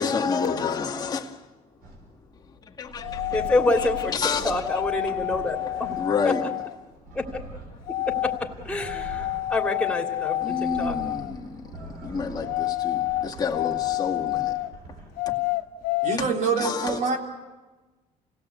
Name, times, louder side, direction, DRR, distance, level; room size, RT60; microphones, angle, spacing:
voice 1, 0.0-1.4 2.8-3.4 3.8-4.7 5.1-5.2 6.0-6.5 10.4-11.6 12.0-14.6 15.3-15.4 16.6-17.0, left 5 dB, 25° left, 2.2 m, -29 dB
sound 1, 1.8-2.2 2.8-6.3 6.8-15.3, right 1 dB, 80° right, 5.5 m, -43 dB
sound 2, 3.0-4.2 4.6-6.7 7.9-8.4 8.8-11.3 12.4-14.7 15.2-16.2, left 17 dB, 80° left, 1.0 m, -28 dB
voice 2, 3.3-4.1 4.4-6.0 6.2-6.5 7.1-7.3 8.6-10.9, left 2 dB, 5° left, 3.0 m, -27 dB
voice 3, 16.0-17.2, right 5 dB, 60° right, 3.5 m, -25 dB
29.0 x 17.5 x 8.4 m
cardioid pair, 120°, 15 cm